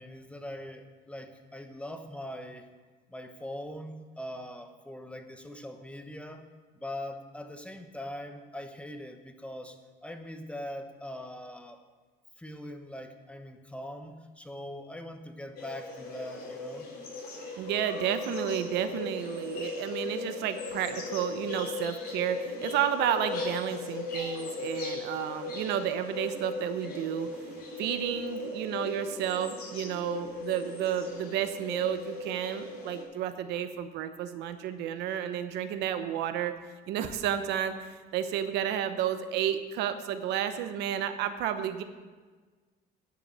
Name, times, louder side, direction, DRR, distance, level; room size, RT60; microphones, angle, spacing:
voice 1, 0.0-2.7 3.1-6.5 6.8-11.8 12.4-16.9, left 1 dB, 5° left, 6 dB, 1.1 m, -42 dB
sound 1, 15.6-33.0, left 3 dB, 65° left, 4.1 m, -38 dB
voice 2, 17.6-27.3 27.8-41.8, right 9 dB, 85° right, 9 dB, 0.9 m, -31 dB
10.5 x 7.0 x 8.9 m, 1.4 s
cardioid pair, 110°, 17 cm